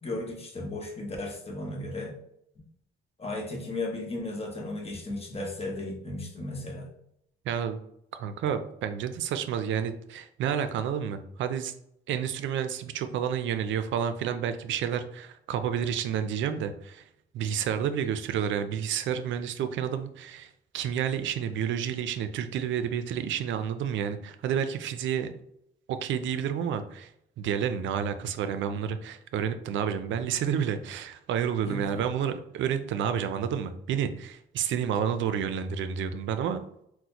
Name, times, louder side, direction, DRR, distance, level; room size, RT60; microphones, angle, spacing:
voice 1, 0.0-2.2 3.2-6.9 31.6-32.1, left 2 dB, 30° left, 1 dB, 1.0 m, -35 dB
voice 2, 7.5-7.8 8.1-11.7 12.1-17.0 17.3-25.3 25.9-27.1 27.4-36.6, right 8 dB, 70° right, 10 dB, 0.4 m, -30 dB
3.9 x 2.1 x 2.8 m, 0.75 s
cardioid pair, 90°, 20 cm